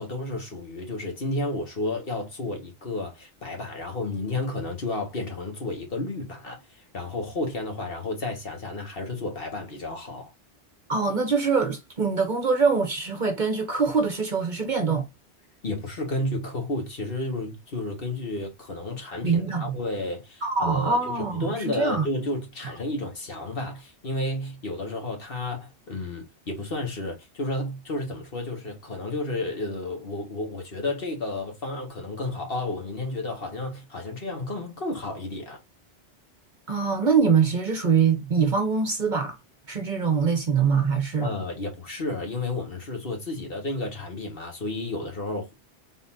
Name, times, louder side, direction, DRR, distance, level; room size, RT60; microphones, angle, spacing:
voice 1, 0.0-10.3 15.6-21.1 21.4-35.6 41.2-45.5, left 2 dB, 55° left, 1.7 m, -32 dB
voice 2, 10.9-15.1 19.2-19.8 20.4-22.1 36.7-39.4 39.7-41.3, right 5 dB, 45° right, 0.9 m, -23 dB
3.9 x 3.9 x 2.6 m
omnidirectional pair, 1.2 m